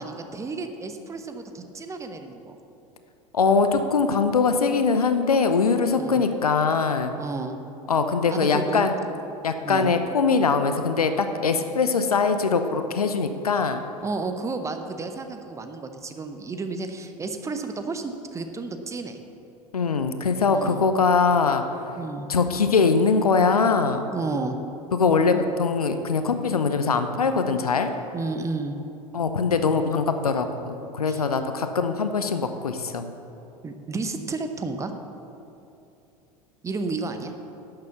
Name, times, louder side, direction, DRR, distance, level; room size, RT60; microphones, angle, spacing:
voice 1, 0.0-2.6 5.9-6.2 7.2-7.6 8.3-8.9 9.6-9.9 14.0-19.2 20.5-20.8 22.0-22.3 24.1-24.6 28.1-28.8 31.1-31.2 33.6-34.9 36.6-37.3, right 3 dB, 15° right, 7 dB, 0.9 m, -32 dB
voice 2, 3.3-7.1 7.9-8.9 9.4-13.8 19.7-21.6 22.3-24.0 25.0-27.9 29.1-33.1, left 5 dB, 75° left, 8 dB, 0.7 m, -22 dB
11.5 x 6.9 x 7.0 m, 2.8 s
figure-of-eight pair, 80°, 19 cm